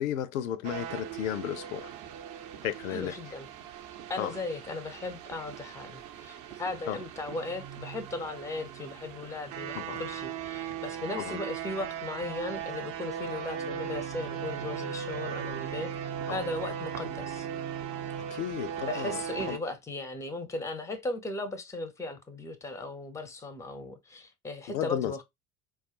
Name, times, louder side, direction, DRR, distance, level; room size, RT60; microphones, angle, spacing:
voice 1, 0.0-1.9 2.6-3.2 4.2-4.4 6.9-7.0 9.8-10.0 11.1-11.4 16.3-16.4 18.3-19.6 24.7-25.1, left 11 dB, 65° left, 0.5 m, -33 dB
sound 1, 0.6-19.6, right 8 dB, 40° right, 0.7 m, -38 dB
voice 2, 2.9-3.5 4.1-17.5 18.9-25.2, left 2 dB, 5° left, 0.6 m, -37 dB
4.4 x 2.3 x 2.9 m
figure-of-eight pair, 70°, 45 cm